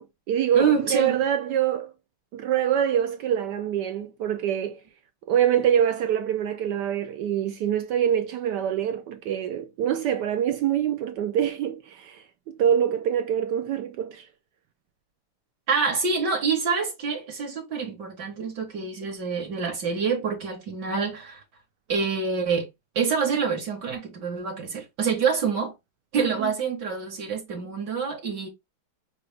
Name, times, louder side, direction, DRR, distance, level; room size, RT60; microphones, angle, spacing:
voice 1, 0.0-1.9 2.3-4.8 5.3-14.3 26.2-26.5, right 9 dB, 85° right, 0.9 m, -25 dB
voice 2, 0.5-1.2 15.7-21.4 21.9-22.7 22.9-25.7 26.1-28.5, right 5 dB, 60° right, 1.5 m, -26 dB
5.8 x 2.3 x 3.3 m
omnidirectional pair, 2.4 m